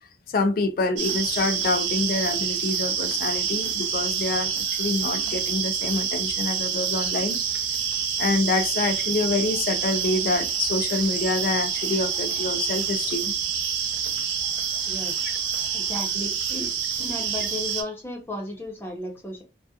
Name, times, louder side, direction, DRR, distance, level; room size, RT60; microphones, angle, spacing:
voice 1, 0.3-7.4 8.2-13.3, left 3 dB, 50° left, 0.3 m, -26 dB
sound 1, 1.0-17.8, right 7 dB, 80° right, 0.5 m, -27 dB
voice 2, 14.9-15.3 15.7-16.7 17.0-19.4, left 1 dB, 10° left, 0.7 m, -34 dB
2.8 x 2.2 x 2.3 m
head